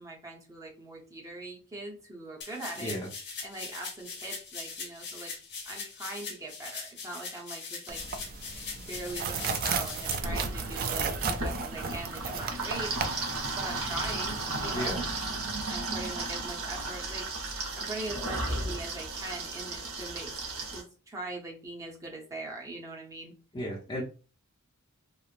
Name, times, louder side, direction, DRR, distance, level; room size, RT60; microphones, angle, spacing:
voice 1, 0.0-2.9 3.4-5.3 5.6-8.0 8.7-13.0 13.5-15.1 15.7-17.3 17.8-20.3 20.7-23.3, right 2 dB, 15° right, -2 dB, 0.7 m, -41 dB
sound 1, 2.4-10.1, left 5 dB, 50° left, 1.0 m, -41 dB
voice 2, 2.8-3.1 14.7-15.0 23.5-24.0, equal, 20° left, -4 dB, 0.6 m, -34 dB
sound 2, 7.9-14.9, right 5 dB, 40° right, 0.3 m, -35 dB
sound 3, 10.2-20.8, right 2 dB, 70° right, 1.0 m, -34 dB
3.1 x 2.0 x 2.4 m, 0.36 s
head